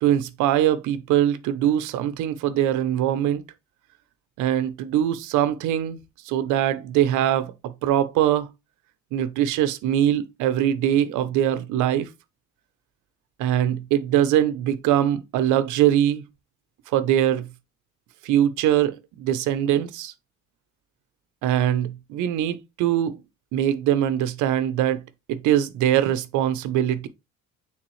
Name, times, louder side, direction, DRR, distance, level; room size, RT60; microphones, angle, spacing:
voice 1, 0.0-3.4 4.4-6.0 6.2-8.5 9.1-12.1 13.4-16.2 16.9-17.5 18.2-20.1 21.4-23.2 23.5-25.0 25.3-27.1, right 11 dB, 75° right, 0.7 m, -22 dB
8.7 x 3.6 x 3.1 m
cardioid pair, 130°, 30 cm